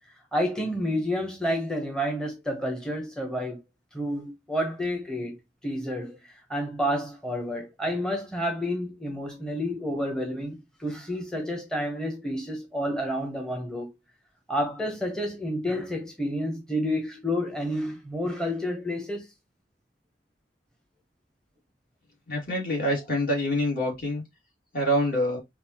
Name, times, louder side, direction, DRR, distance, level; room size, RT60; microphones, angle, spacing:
voice 1, 0.3-3.6 3.9-5.4 5.6-6.2 6.5-13.9 14.5-19.3, equal, 5° left, 0.8 m, -30 dB
voice 2, 22.3-24.2 24.7-25.4, equal, 55° left, 2.1 m, -26 dB
5.2 x 2.4 x 2.8 m
head